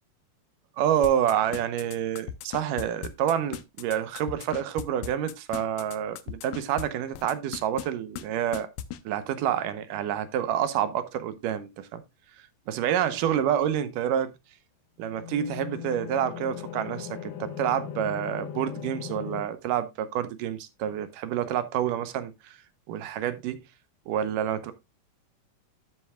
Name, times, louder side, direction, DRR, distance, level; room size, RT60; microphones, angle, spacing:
voice 1, 0.8-8.7 9.1-12.0 12.7-14.3 15.0-22.6 22.9-23.6 24.1-24.7, right 10 dB, 75° right, 2.4 m, -28 dB
sound 1, 1.0-6.8 7.1-7.9 8.2-8.3 8.5-9.0, left 12 dB, 80° left, 1.5 m, -36 dB
sound 2, 15.1-19.4, left 9 dB, 60° left, 1.3 m, -38 dB
12.5 x 7.8 x 2.3 m
omnidirectional pair, 4.0 m